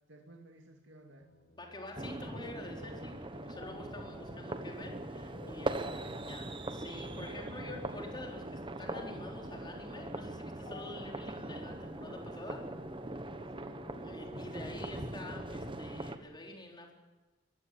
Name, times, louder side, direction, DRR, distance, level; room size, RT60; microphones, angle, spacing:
voice 1, 0.1-1.3 5.8-7.3 13.5-13.8 14.3-14.7 15.6-16.6, right 1 dB, 70° right, 2 dB, 2.4 m, -56 dB
sound 1, 1.2-11.9, left 3 dB, 45° left, 1.8 m, -56 dB
voice 2, 1.5-12.6 14.0-16.9, left 1 dB, 25° left, 1 dB, 4.1 m, -47 dB
sound 2, 2.0-16.2, right 2 dB, 25° right, 1.2 m, -41 dB
sound 3, 3.4-16.2, equal, 5° left, 1.1 m, -56 dB
22.0 x 16.0 x 9.7 m, 1.2 s
head